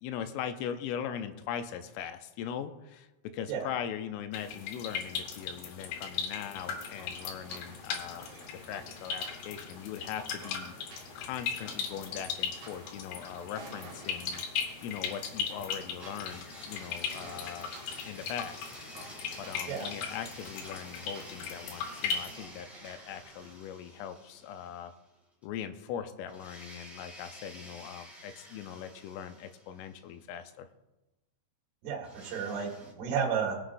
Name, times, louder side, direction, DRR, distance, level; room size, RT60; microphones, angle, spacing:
voice 1, 0.0-14.4 14.8-17.7 18.1-18.7 19.4-25.0 25.4-30.7, left 9 dB, 85° left, 9 dB, 3.2 m, -40 dB
sound 1, 4.3-22.4, left 6 dB, 70° left, 3.0 m, -38 dB
sound 2, 6.4-23.5, right 3 dB, 55° right, 2.2 m, -53 dB
Domestic sounds home sounds, 16.0-25.1 25.4-25.5 26.3-30.2 32.0-32.9, equal, ahead, 0.8 m, -51 dB
voice 2, 31.8-33.6, right 6 dB, 80° right, -4 dB, 4.3 m, -32 dB
22.0 x 7.5 x 2.6 m, 1.0 s
omnidirectional pair, 5.6 m